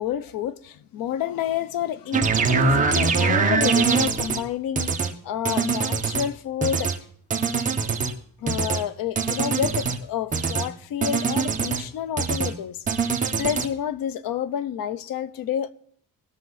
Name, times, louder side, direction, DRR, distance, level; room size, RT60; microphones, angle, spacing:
voice 1, 0.0-6.9 8.4-12.8 13.0-15.7, left 9 dB, 85° left, 0.9 m, -29 dB
sound 1, 2.1-4.4 4.8-5.1 5.4-6.3 6.6-7.0 7.3-8.1 8.5-8.8 9.2-10.0 10.3-10.7 11.0-11.8 12.2-12.5 12.9-13.7, right 5 dB, 25° right, 1.3 m, -23 dB
19.5 x 6.7 x 4.0 m
cardioid pair, 150°, 33 cm